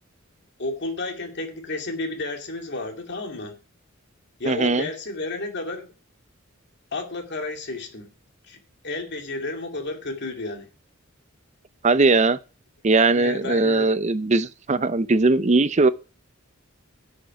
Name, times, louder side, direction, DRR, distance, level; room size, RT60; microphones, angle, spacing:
voice 1, 0.6-3.6 4.4-5.9 6.9-8.1 8.5-8.6 8.8-10.7 13.2-13.9, left 2 dB, 55° left, 2.3 m, -31 dB
voice 2, 4.5-4.9 11.8-12.4 12.8-15.9, right 3 dB, 35° right, 0.6 m, -19 dB
10.0 x 6.5 x 5.8 m
head